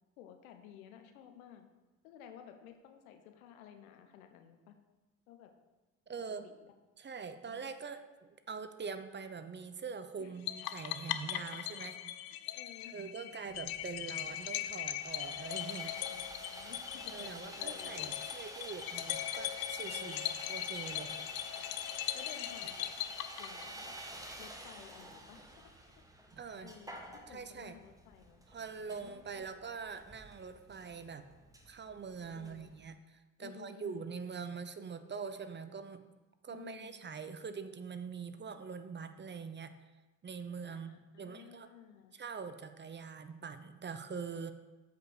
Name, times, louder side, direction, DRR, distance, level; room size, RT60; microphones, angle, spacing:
voice 1, 0.2-1.7 2.0-4.7 5.3-5.5 6.4-6.7 7.4-7.7 10.2-10.3 12.5-12.9 13.2-13.3 14.2-14.3 16.1-18.3 19.8-20.4 21.1-21.7 22.1-22.9 23.4-23.9 24.4-25.4 26.6-29.5 32.3-32.7 33.4-34.2 36.5-37.0 40.7-42.1, left 9 dB, 80° left, 6 dB, 1.0 m, -55 dB
voice 2, 6.1-6.5 7.0-12.1 12.9-16.0 17.1-21.1 26.3-26.7 27.3-27.8 28.5-31.3 31.7-36.0 36.4-39.7 40.2-41.7 42.1-44.5, right 5 dB, 25° right, 10 dB, 0.7 m, -44 dB
sound 1, 10.5-23.9, left 13 dB, 60° left, 0.7 m, -40 dB
Sawing, 13.5-32.9, right 1 dB, 10° right, 1.4 m, -50 dB
8.3 x 5.1 x 6.5 m, 1.2 s
hypercardioid pair, 65°, 42 cm